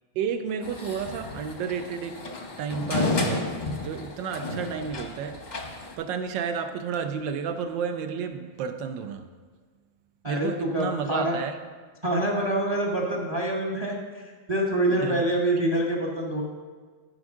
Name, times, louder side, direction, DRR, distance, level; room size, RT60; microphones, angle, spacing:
voice 1, 0.2-2.2 2.6-3.5 3.8-5.4 6.0-9.3 10.3-11.5 15.0-15.2, right 6 dB, 75° right, 8 dB, 1.3 m, -31 dB
sound 1, 0.6-5.9, left 3 dB, 40° left, 0.6 m, -32 dB
voice 2, 10.2-11.4 12.0-16.4, right 1 dB, 25° right, -1 dB, 0.6 m, -26 dB
14.5 x 5.2 x 3.6 m, 1.5 s
omnidirectional pair, 2.1 m